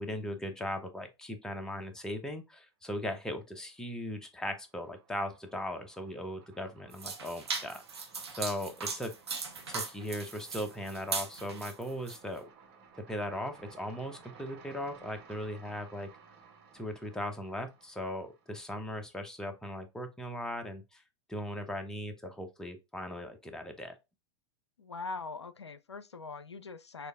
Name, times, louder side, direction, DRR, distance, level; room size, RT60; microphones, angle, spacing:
voice 1, 0.0-9.1 9.7-12.5 13.1-16.1 16.7-21.0 21.3-23.9, left 1 dB, 5° left, 0.7 m, -38 dB
sound 1, 3.2-3.7 4.0-19.2, right 6 dB, 40° right, 1.6 m, -58 dB
sound 2, 6.9-12.2, right 4 dB, 70° right, 1.1 m, -38 dB
voice 2, 24.8-27.1, left 4 dB, 80° left, 0.4 m, -42 dB
6.3 x 2.6 x 2.4 m
figure-of-eight pair, 95°, 14 cm